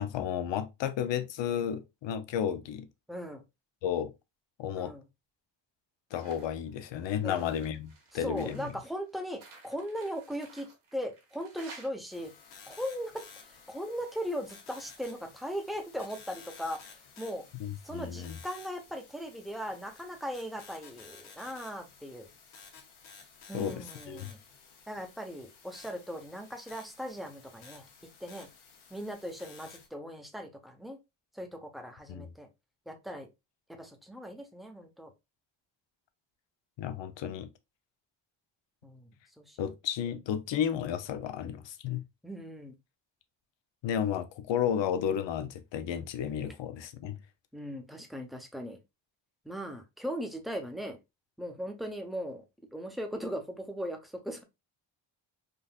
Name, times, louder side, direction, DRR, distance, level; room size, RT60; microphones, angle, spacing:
voice 1, 0.0-2.9 3.8-4.1 4.6-4.9 6.1-8.7 17.6-18.4 23.5-24.3 32.1-32.3 36.8-37.5 39.6-42.0 43.8-47.2, left 9 dB, 65° left, 0.7 m, -33 dB
voice 2, 3.1-3.4 4.8-5.0 7.2-7.4 8.1-12.3 12.7-13.2 13.7-17.4 17.8-22.3 23.5-24.4 24.9-27.8 28.2-28.5 28.9-31.0 31.3-32.5 32.9-33.3 33.7-35.1 38.8-39.1 39.4-39.7 42.2-42.7 47.5-48.8 49.4-51.0 51.4-52.4 52.7-54.4, equal, ahead, 0.8 m, -38 dB
sound 1, 6.1-6.6 6.9-11.9, right 3 dB, 80° right, 1.7 m, -53 dB
sound 2, 12.1-29.9, left 5 dB, 80° left, 1.1 m, -54 dB
3.8 x 2.6 x 2.4 m
cardioid pair, 75°, 48 cm